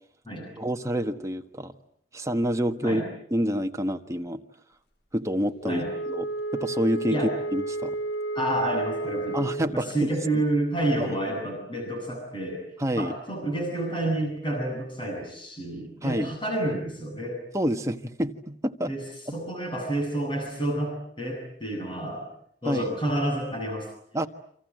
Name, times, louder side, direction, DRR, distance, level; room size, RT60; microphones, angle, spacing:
voice 1, 0.6-1.7 2.1-3.0 3.3-4.4 5.1-6.3 6.5-7.2 7.5-8.0 9.3-10.4 11.0-11.2 12.8-13.2 16.0-16.3 17.5-18.9 19.3-19.4 22.7-22.9 24.1-24.3, equal, 15° right, 5 dB, 1.5 m, -28 dB
Wind instrument woodwind instrument, 5.6-9.8, right 2 dB, 60° left, 3.3 m, -32 dB
voice 2, 8.3-9.4 9.7-12.6 12.9-17.4 18.9-19.0 19.3-22.3 22.6-23.9, right 1 dB, 30° left, 2 dB, 8.0 m, -29 dB
29.0 x 26.5 x 7.7 m, 0.66 s
head